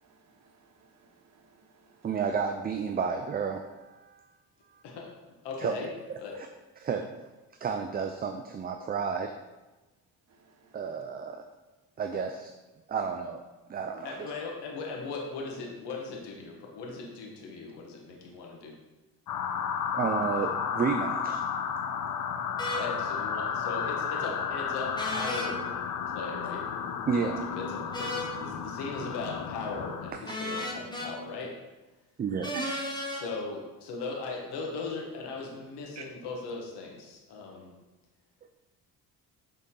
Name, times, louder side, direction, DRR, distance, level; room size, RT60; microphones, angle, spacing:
voice 1, 0.1-0.7 1.0-2.0 10.5-10.7 32.5-33.2 36.0-36.1, right 4 dB, 45° right, 4 dB, 0.9 m, -45 dB
voice 2, 2.0-4.2 4.7-4.8 5.6-5.7 6.4-6.5 6.8-7.3 7.6-9.3 10.7-11.4 12.0-12.5 12.9-13.4 13.7-14.3 19.9-21.4 27.1-27.4 30.1-30.3 32.2-32.6, right 6 dB, 25° right, 5 dB, 0.4 m, -31 dB
voice 3, 5.4-5.9 6.2-6.3 14.0-18.8 22.6-25.6 26.1-26.6 27.5-31.5 33.1-37.7, left 3 dB, 85° left, -1 dB, 1.4 m, -38 dB
sound 1, 19.3-30.1, left 7 dB, 55° left, 0.7 m, -33 dB
sound 2, 22.6-22.8 25.0-25.5 27.9-28.3 30.3-31.1 32.4-33.2, left 1 dB, 10° left, 0.9 m, -34 dB
6.6 x 3.8 x 3.7 m, 1.1 s
cardioid pair, 90°, 39 cm